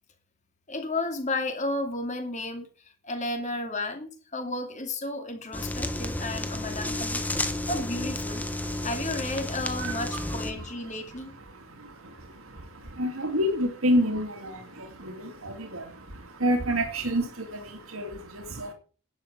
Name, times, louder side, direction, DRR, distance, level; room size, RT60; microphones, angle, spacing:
voice 1, 0.7-2.7 3.0-7.2 7.7-8.4 8.8-11.3, left 2 dB, 35° left, 2.7 m, -32 dB
sound 1, 5.5-10.5, left 1 dB, 10° left, 1.3 m, -32 dB
voice 2, 7.3-7.7 8.6-8.9 9.8-10.0 10.5-10.6 11.5-18.7, equal, 85° right, 2.7 m, -30 dB
11.5 x 8.5 x 8.2 m
head